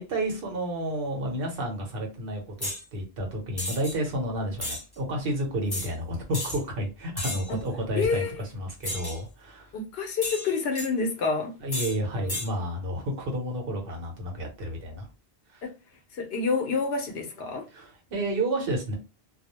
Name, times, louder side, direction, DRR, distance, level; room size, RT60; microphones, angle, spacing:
voice 1, 0.0-9.7 11.6-15.1 15.5-15.6 17.7-18.9, right 1 dB, 65° right, 1.0 m, -31 dB
sound 1, 2.6-2.8 3.6-4.0 4.6-4.8 5.7-5.9 6.3-6.6 7.2-7.5 8.8-9.2 10.2-10.9 11.7-12.0 12.3-12.5, left 1 dB, 25° left, 0.8 m, -33 dB
voice 2, 8.0-8.4 9.7-11.5 15.6-15.7 16.1-17.6, left 4 dB, 75° left, 0.8 m, -28 dB
2.3 x 2.0 x 2.9 m
omnidirectional pair, 1.0 m